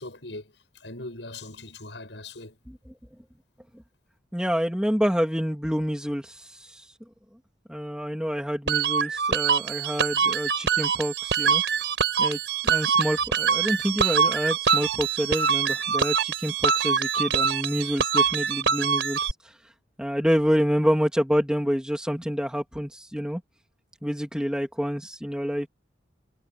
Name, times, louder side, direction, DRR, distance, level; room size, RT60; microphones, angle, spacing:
voice 1, 0.0-2.6, left 2 dB, 80° left, 7.4 m, -40 dB
voice 2, 4.3-6.8 7.7-11.6 12.2-12.4 12.6-19.3 20.0-23.4 24.0-25.7, equal, 5° right, 3.0 m, -27 dB
sound 1, 8.7-19.3, right 6 dB, 85° right, 4.9 m, -24 dB
head